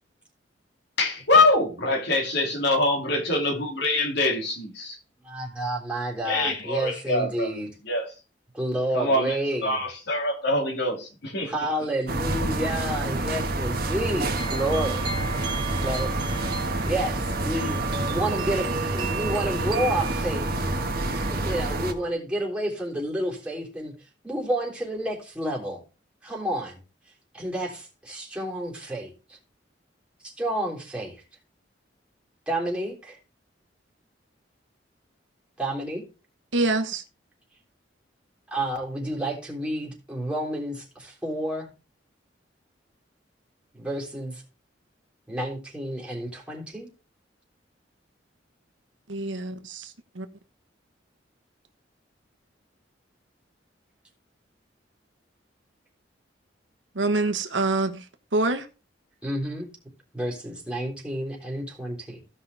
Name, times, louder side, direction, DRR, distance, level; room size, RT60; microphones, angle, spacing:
voice 1, 1.0-4.9 6.2-7.5 7.8-8.1 8.9-11.6, left 2 dB, 65° left, 2.7 m, -24 dB
voice 2, 5.3-7.7 8.5-9.8 11.4-15.1 15.7-16.1 16.9-20.6 21.2-23.9 24.2-25.8 26.2-26.8 27.3-29.4 30.2-31.2 32.5-33.2 35.6-36.0 38.5-41.7 43.7-44.4 45.3-46.9 59.2-59.7 60.1-62.2, right 1 dB, 5° right, 3.5 m, -30 dB
sound 1, 12.1-21.9, right 2 dB, 55° right, 1.7 m, -28 dB
sound 2, 14.3-22.1, right 4 dB, 25° right, 1.9 m, -36 dB
voice 3, 36.5-37.0 49.1-50.3 56.9-58.0 58.3-58.7, right 2 dB, 85° right, 1.2 m, -26 dB
16.0 x 5.6 x 3.5 m
head